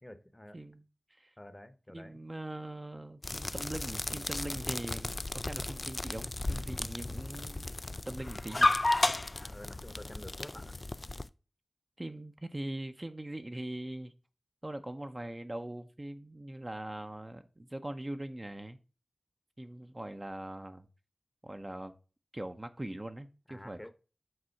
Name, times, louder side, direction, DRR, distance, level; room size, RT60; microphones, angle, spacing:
voice 1, 0.0-0.6 1.4-2.2 9.3-10.8 23.5-23.9, left 1 dB, 20° left, 0.9 m, -49 dB
voice 2, 1.9-7.7 8.1-8.8 12.0-14.1 14.6-18.8 19.6-20.9 21.4-21.9 22.3-23.9, right 1 dB, 25° right, 0.7 m, -41 dB
sound 1, 3.2-11.3, left 2 dB, 40° left, 0.4 m, -33 dB
7.9 x 3.7 x 5.7 m
wide cardioid pair, 65°, 0 cm